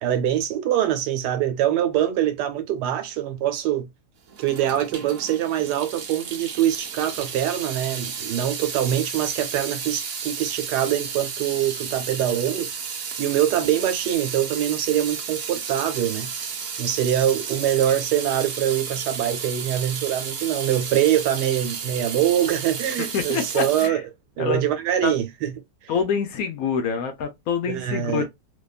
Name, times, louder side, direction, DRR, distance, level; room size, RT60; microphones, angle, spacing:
voice 1, 0.0-3.9 4.4-12.7 13.2-16.3 16.8-24.0 24.4-25.5 25.8-25.9 27.7-28.3, right 11 dB, 80° right, 1.2 m, -24 dB
Water tap faucet / Sink (filling or washing) / Drip, 4.3-23.9, right 6 dB, 65° right, 0.8 m, -33 dB
voice 2, 23.0-24.0 24.4-24.6 25.0-25.1 25.9-28.3, left 6 dB, 70° left, 0.9 m, -26 dB
2.8 x 2.2 x 2.3 m
omnidirectional pair, 1.8 m